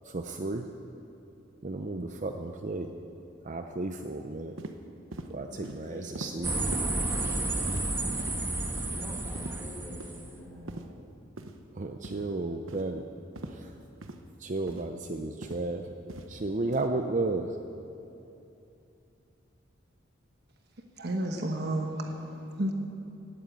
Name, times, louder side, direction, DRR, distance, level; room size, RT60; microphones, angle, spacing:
voice 1, 0.1-0.7 1.6-2.9 3.4-4.5 5.3-6.6 11.8-13.0 13.5-13.7 14.4-17.5, right 2 dB, 40° right, 5 dB, 0.6 m, -33 dB
sound 1, 4.6-4.7 5.1-5.3 5.6-5.8 6.1-6.3 6.7-6.8 7.2-7.4 7.7-7.8 8.2-8.4 8.8-8.9 9.3-9.5 10.0-10.2 10.7-10.8 11.4-11.6 12.0-12.2 12.7-12.9 13.4-13.5 14.0-14.2 14.7-14.9 15.4-15.6 16.1-16.3 16.7-16.9, right 2 dB, 85° right, 1.0 m, -41 dB
voice 2, 5.5-7.8 8.9-10.0 10.3-10.7, equal, 10° left, -5 dB, 4.8 m, -45 dB
sound 2, 6.4-10.3, right 2 dB, 10° right, 1.3 m, -31 dB
voice 3, 21.0-22.7, right 1 dB, 55° right, 3 dB, 1.2 m, -31 dB
18.0 x 9.0 x 8.3 m, 2.8 s
head